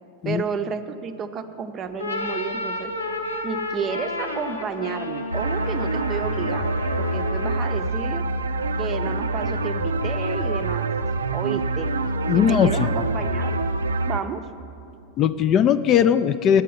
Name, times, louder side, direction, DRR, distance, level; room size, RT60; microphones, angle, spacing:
voice 1, 0.2-2.9 3.4-8.2 8.8-10.9 11.3-11.9 12.3-13.6 14.1-14.4, right 6 dB, 30° right, 9 dB, 0.6 m, -31 dB
sound 1, 1.8-7.9, left 2 dB, 80° left, 1.0 m, -32 dB
sound 2, 5.3-14.2, right 2 dB, 75° right, 0.5 m, -25 dB
voice 2, 12.3-12.9 15.2-16.6, left 8 dB, 30° left, 12 dB, 0.4 m, -19 dB
9.2 x 8.3 x 9.3 m, 2.7 s
figure-of-eight pair, 90°, 0 cm